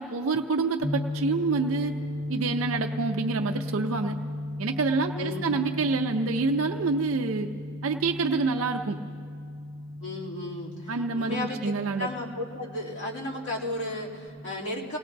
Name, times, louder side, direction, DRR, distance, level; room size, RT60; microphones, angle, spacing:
voice 1, 0.0-2.0 2.3-4.2 4.6-7.5 7.8-9.0 10.9-12.1, right 4 dB, 65° right, 4 dB, 0.5 m, -27 dB
sound 1, 0.8-14.3, left 1 dB, 75° left, 4.6 m, -36 dB
voice 2, 5.1-5.7 10.0-11.7 12.0-15.0, left 2 dB, 55° left, -5 dB, 2.7 m, -34 dB
27.0 x 18.5 x 2.6 m, 2.4 s
head